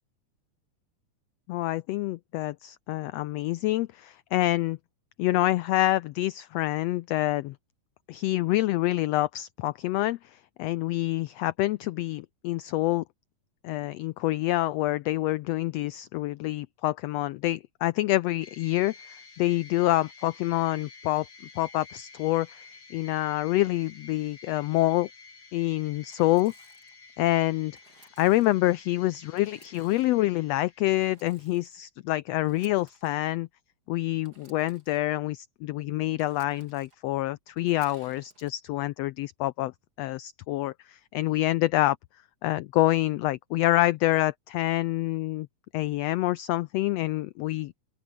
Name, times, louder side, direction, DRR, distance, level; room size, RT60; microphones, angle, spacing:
voice 1, 1.5-4.8 5.2-7.6 8.1-13.0 13.6-21.3 21.6-22.7 22.9-25.1 25.5-26.5 27.2-27.7 28.2-33.5 33.9-39.7 40.0-42.0 42.4-45.5 45.7-47.7, left 16 dB, 85° left, 1.4 m, -27 dB
sound 1, 18.4-31.2, left 4 dB, 65° left, 6.4 m, -51 dB
Engine / Sawing, 26.1-26.9 27.7-28.6 29.4-30.2 30.9-31.8 32.4-33.2 34.2-35.0 36.2-37.0 37.6-38.5, right 3 dB, 30° right, 4.2 m, -59 dB
open air
omnidirectional pair, 3.5 m